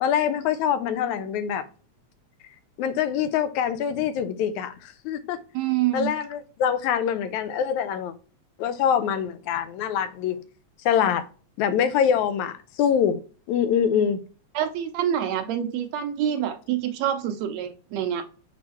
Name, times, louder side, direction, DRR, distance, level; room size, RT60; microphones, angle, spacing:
voice 1, 0.0-1.6 2.8-5.4 5.9-8.1 8.6-10.4 10.9-11.2 11.6-13.2 13.5-14.2, left 8 dB, 80° left, 2.0 m, -24 dB
voice 2, 5.5-6.1 14.5-18.2, right 10 dB, 75° right, 1.8 m, -26 dB
6.4 x 4.5 x 4.2 m
omnidirectional pair, 3.4 m